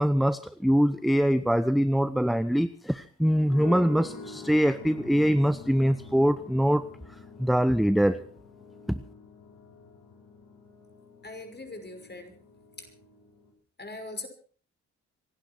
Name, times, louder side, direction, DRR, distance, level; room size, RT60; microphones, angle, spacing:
voice 1, 0.0-6.9 7.4-8.2 8.9-9.0, equal, ahead, 13 dB, 0.8 m, -23 dB
sound 1, 3.5-13.5, left 3 dB, 85° left, 3.9 m, -46 dB
voice 2, 11.2-12.3 12.8-12.9 13.8-14.3, left 2 dB, 35° left, 6 dB, 5.9 m, -40 dB
26.0 x 11.5 x 4.6 m, 0.42 s
supercardioid pair, 50°, 31 cm